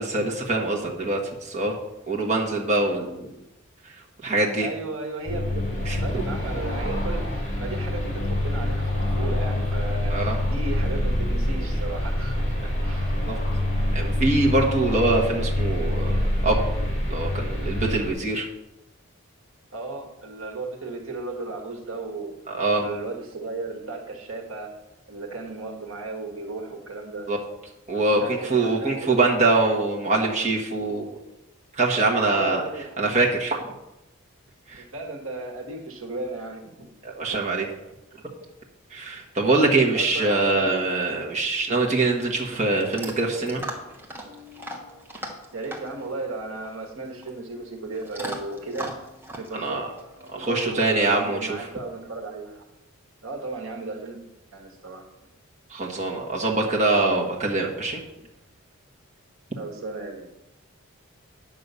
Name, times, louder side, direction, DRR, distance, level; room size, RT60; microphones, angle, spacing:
voice 1, 0.0-1.7 2.1-3.4 3.8-3.9 4.2-4.7 5.8-6.2 10.1-10.4 13.3-13.4 13.9-16.6 17.1-18.5 22.5-22.8 27.3-27.4 27.9-31.1 31.7-32.6 33.0-33.7 34.7-34.8 37.0-37.7 38.9-43.6 49.5-49.9 50.3-51.6 55.7-58.0, right 2 dB, 35° right, -2 dB, 1.4 m, -24 dB
voice 2, 4.6-13.1 19.7-22.4 22.8-24.8 25.1-27.3 28.1-29.5 32.3-32.9 34.8-36.9 37.3-37.4 39.9-40.9 45.5-49.0 49.4-49.8 50.4-52.6 53.2-54.2 54.5-55.1 59.6-60.3, right 3 dB, 70° right, 2 dB, 1.6 m, -35 dB
sound 1, 5.2-18.1, left 1 dB, 35° left, 2.6 m, -26 dB
Chewing mastication / Dog, 41.8-50.9, right 1 dB, 10° right, 1.3 m, -40 dB
9.8 x 5.8 x 6.8 m, 0.92 s
head